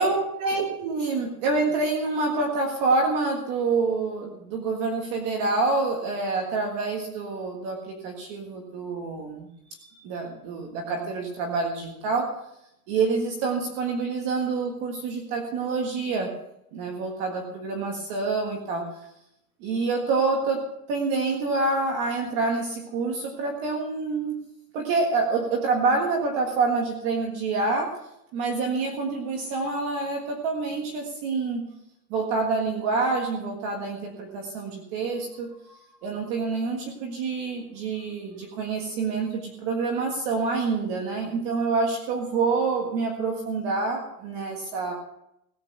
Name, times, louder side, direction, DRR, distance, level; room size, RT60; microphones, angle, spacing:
voice 1, 0.0-9.5 9.7-12.3 12.9-16.3 16.7-18.8 19.6-20.6 20.9-24.4 24.7-27.9 28.3-31.6 32.1-44.9, right 3 dB, 25° right, 2 dB, 1.6 m, -27 dB
17.0 x 8.8 x 6.8 m, 0.80 s
supercardioid pair, 175°, 48 cm